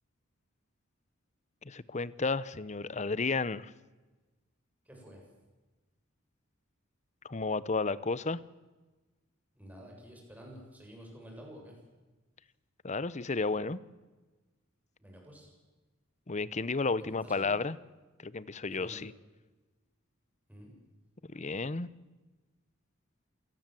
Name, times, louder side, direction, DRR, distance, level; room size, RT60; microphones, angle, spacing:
voice 1, 1.6-3.7 7.2-8.4 12.8-13.8 16.3-17.8 18.2-19.1 21.2-21.9, left 3 dB, 35° left, 18 dB, 0.8 m, -32 dB
voice 2, 4.9-5.2 9.6-11.7 15.0-15.5 17.0-17.5 18.7-19.0 20.5-20.7, equal, 10° right, 0 dB, 7.0 m, -50 dB
27.5 x 18.0 x 7.7 m, 1.2 s
head